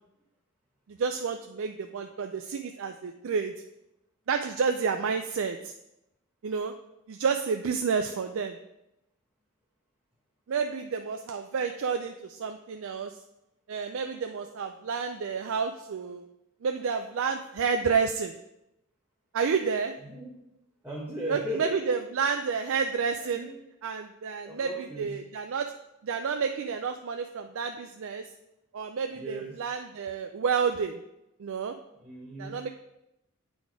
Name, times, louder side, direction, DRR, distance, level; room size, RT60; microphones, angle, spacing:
voice 1, 0.9-3.5 4.3-5.7 6.4-6.7 7.1-8.6 10.5-13.1 13.7-16.2 16.6-18.3 19.3-19.9 21.3-23.5 23.8-24.7 25.0-25.7 26.0-28.3 28.7-31.0 31.4-31.7 32.4-32.7, right 5 dB, 65° right, 6 dB, 0.4 m, -30 dB
voice 2, 20.0-20.4 20.8-22.0 22.3-22.4 23.2-23.6 24.4-25.2 29.1-29.6 32.0-32.6, equal, 10° right, -6 dB, 1.1 m, -37 dB
8.9 x 4.2 x 4.7 m, 0.86 s
head